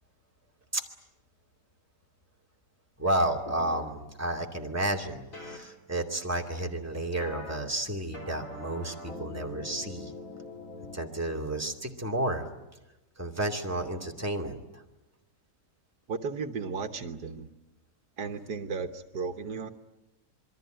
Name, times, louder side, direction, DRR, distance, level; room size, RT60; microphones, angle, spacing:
voice 1, 3.0-10.1 10.9-12.5 13.2-14.8, right 1 dB, 10° right, 1 dB, 2.5 m, -31 dB
sound 1, 3.5-3.8 5.3-5.6 7.2-7.6 8.1-11.0, left 2 dB, 50° left, 4.3 m, -42 dB
voice 2, 16.1-17.5 18.2-19.7, right 5 dB, 75° right, 7 dB, 1.7 m, -35 dB
27.0 x 23.0 x 9.1 m, 1.0 s
omnidirectional pair, 1.8 m